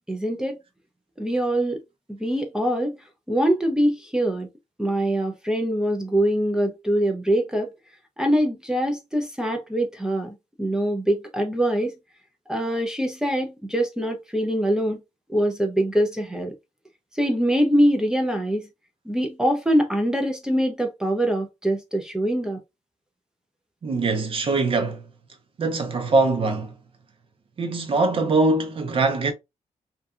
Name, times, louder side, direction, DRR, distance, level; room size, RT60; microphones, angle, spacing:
voice 1, 0.1-0.6 1.2-1.8 2.1-3.0 3.3-4.5 4.8-7.7 8.2-12.0 12.5-15.0 15.3-16.5 17.1-18.7 19.1-22.6, equal, 5° right, 0.5 m, -23 dB
voice 2, 23.8-25.0 25.6-26.7 27.6-29.3, right 3 dB, 45° right, 0.7 m, -22 dB
2.6 x 2.3 x 2.4 m
cardioid pair, 125°, 13 cm